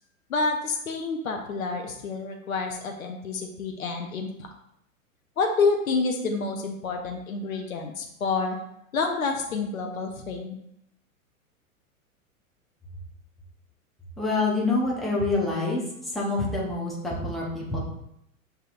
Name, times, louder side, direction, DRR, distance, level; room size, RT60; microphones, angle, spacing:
voice 1, 0.3-4.3 5.4-8.6 8.9-10.6, left 4 dB, 70° left, 3 dB, 0.7 m, -28 dB
voice 2, 14.2-15.8 16.1-17.8, left 3 dB, ahead, -5 dB, 0.5 m, -26 dB
6.7 x 2.8 x 2.4 m, 0.76 s
figure-of-eight pair, 100°, 43 cm